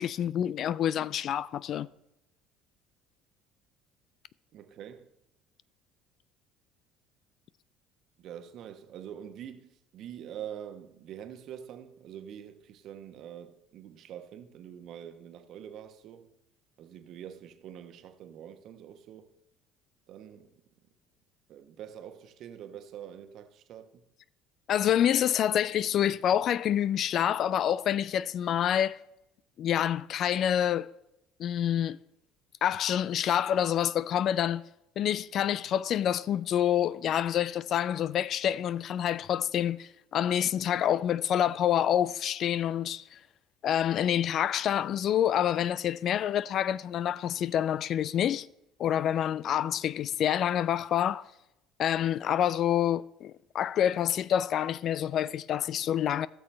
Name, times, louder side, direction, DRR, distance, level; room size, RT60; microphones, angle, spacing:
voice 1, 0.0-1.9 24.7-29.0 29.6-30.9 31.4-32.0 32.6-34.6 35.0-43.2 43.6-48.5 48.8-51.2 51.8-56.3, left 10 dB, 50° left, 0.3 m, -27 dB
voice 2, 4.5-5.1 8.2-16.3 16.8-19.3 20.1-20.6 21.5-24.0, right 9 dB, 50° right, 1.1 m, -45 dB
17.0 x 6.7 x 3.3 m
figure-of-eight pair, 60°, 0 cm